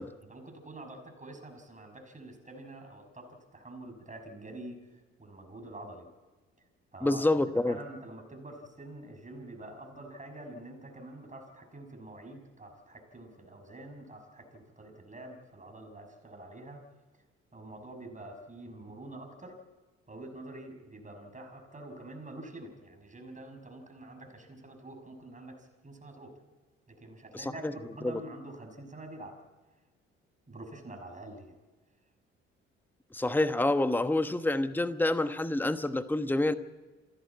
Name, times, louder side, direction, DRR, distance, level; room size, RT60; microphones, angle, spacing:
voice 1, 0.2-4.8 5.2-6.1 6.9-7.2 7.5-16.9 17.5-19.6 20.1-26.4 26.9-29.4 30.5-31.5, right 1 dB, 25° right, 5 dB, 5.9 m, -46 dB
voice 2, 7.0-7.8 27.3-27.7 28.0-28.2 33.1-36.5, left 2 dB, 5° left, 11 dB, 1.1 m, -27 dB
28.0 x 11.5 x 8.6 m, 1.3 s
hypercardioid pair, 50°, 32 cm